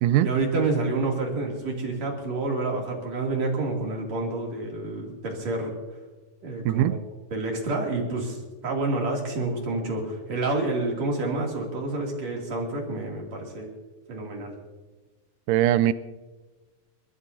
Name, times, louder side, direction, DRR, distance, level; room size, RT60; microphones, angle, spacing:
voice 1, 0.2-5.7 6.4-7.0 7.3-13.7 14.1-14.6, right 2 dB, 50° right, -1 dB, 3.7 m, -28 dB
voice 2, 6.7-7.0 15.5-15.9, right 13 dB, 85° right, 14 dB, 1.9 m, -20 dB
30.0 x 13.5 x 2.7 m, 1.2 s
omnidirectional pair, 4.3 m